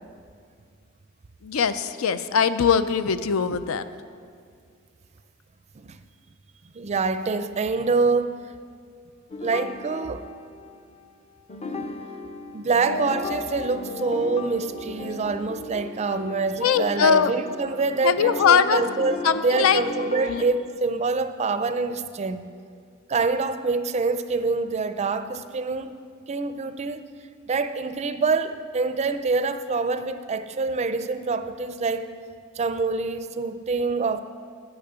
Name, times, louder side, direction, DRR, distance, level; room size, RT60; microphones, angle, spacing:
voice 1, 1.4-3.8 16.6-17.3 18.0-18.8 19.2-19.8 20.3-20.4, left 7 dB, 85° left, 12 dB, 0.5 m, -21 dB
voice 2, 6.7-8.3 9.4-10.3 12.5-22.5 23.1-26.0 26.3-27.0 27.5-32.1 32.6-34.2, right 4 dB, 30° right, 11 dB, 0.4 m, -26 dB
sound 1, 9.3-11.1 11.5-20.4, left 2 dB, 30° left, 0.6 m, -36 dB
10.0 x 5.9 x 7.9 m, 2.2 s
head